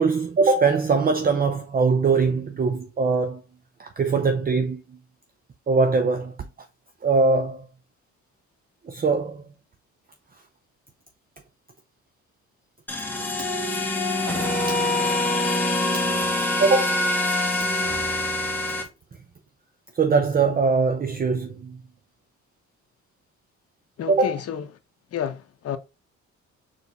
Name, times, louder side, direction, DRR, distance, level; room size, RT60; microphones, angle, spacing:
voice 1, 0.0-3.4 3.8-4.8 5.7-6.3 7.0-7.6 8.9-9.4 13.4-13.5 14.7-14.8 15.9-16.1 16.6-17.1 20.0-21.8 24.1-24.3, right 4 dB, 30° right, 0.6 m, -22 dB
sound 1, 12.9-18.8, left 2 dB, 5° left, 1.1 m, -24 dB
voice 2, 24.0-24.7 25.1-25.8, left 9 dB, 55° left, 0.7 m, -30 dB
3.9 x 3.1 x 3.9 m
cardioid pair, 90°, 30 cm